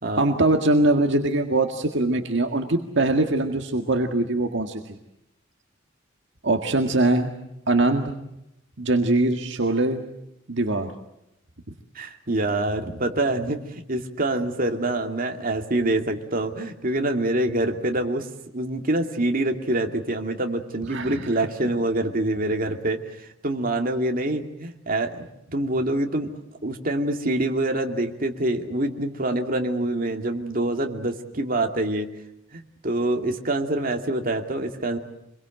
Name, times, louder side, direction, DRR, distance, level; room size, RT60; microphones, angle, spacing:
voice 1, 0.2-5.0 6.4-7.3 7.7-8.2 8.8-10.0 10.5-10.9 20.9-21.2, right 2 dB, 65° right, 4 dB, 1.8 m, -22 dB
voice 2, 11.9-18.3 18.5-26.3 26.6-32.1 32.5-35.0, right 1 dB, 45° right, 3 dB, 2.4 m, -26 dB
26.5 x 22.5 x 7.8 m, 0.84 s
head